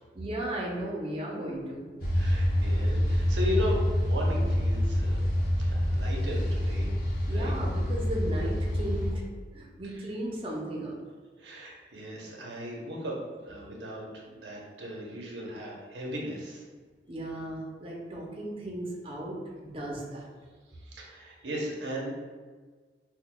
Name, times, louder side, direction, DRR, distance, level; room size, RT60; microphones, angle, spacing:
voice 1, 0.1-1.9 7.3-9.2 9.5-11.0 17.1-20.3, right 1 dB, 30° right, -3 dB, 0.6 m, -35 dB
sound 1, 2.0-9.1, equal, 55° left, 0.7 m, -27 dB
voice 2, 2.1-5.2 5.6-7.5 9.8-10.1 11.4-16.6 20.8-22.1, equal, 85° right, -2 dB, 0.8 m, -37 dB
5.8 x 2.2 x 2.2 m, 1.5 s
head